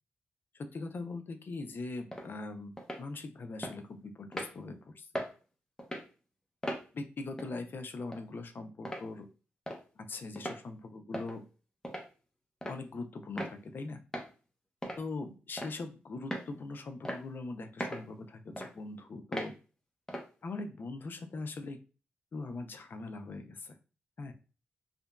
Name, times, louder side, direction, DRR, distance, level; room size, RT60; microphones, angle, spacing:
voice 1, 0.7-5.1 6.9-9.3 10.0-11.4 12.7-14.0 15.0-19.5 20.4-21.8 22.3-23.7 24.2-24.3, left 3 dB, 55° left, 7 dB, 0.5 m, -41 dB
sound 1, 2.1-2.3 2.8-3.0 3.6-3.8 4.3-4.5 5.1-5.3 5.8-6.1 6.6-6.8 7.4-7.6 8.1-8.2 8.8-9.1 9.7-9.8 10.4-10.6 11.1-11.4 11.8-12.1 12.6-12.8 13.4-13.6 14.1-14.3 14.8-15.0 15.6-15.8 16.3-16.5 17.0-17.2 17.8-18.1 18.6-18.7 19.3-19.5 20.1-20.3, equal, 15° left, 0.8 m, -38 dB
2.9 x 2.5 x 2.2 m, 0.34 s
cardioid pair, 60°, 4 cm